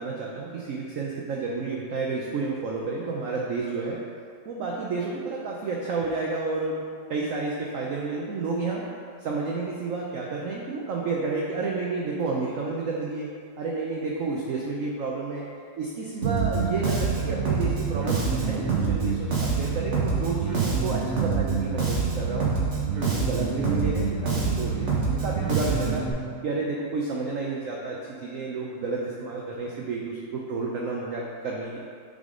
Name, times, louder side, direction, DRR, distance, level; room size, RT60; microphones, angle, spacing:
voice 1, 0.0-4.0 4.5-6.8 7.1-8.9 9.2-13.3 13.6-15.5 15.8-22.5 23.0-26.1 26.4-31.8, right 3 dB, 75° right, -2 dB, 0.7 m, -30 dB
Bass guitar, 16.2-26.1, right 5 dB, 45° right, 1.2 m, -26 dB
7.2 x 3.6 x 3.7 m, 2.2 s
omnidirectional pair, 2.1 m